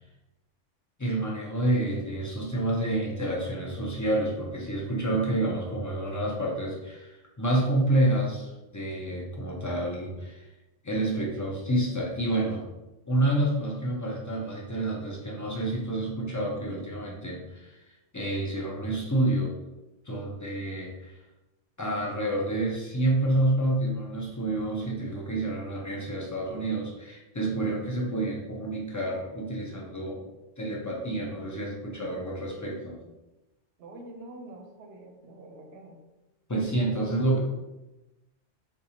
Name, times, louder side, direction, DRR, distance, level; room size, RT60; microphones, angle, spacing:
voice 1, 1.0-10.5 10.8-12.6 13.1-17.8 18.1-19.5 20.1-21.2 21.8-30.3 30.6-33.0 36.5-37.4, right 1 dB, 25° left, -3 dB, 0.4 m, -28 dB
voice 2, 33.8-36.0, right 1 dB, 70° right, 2 dB, 0.8 m, -46 dB
3.7 x 2.6 x 2.8 m, 1.0 s
omnidirectional pair, 1.2 m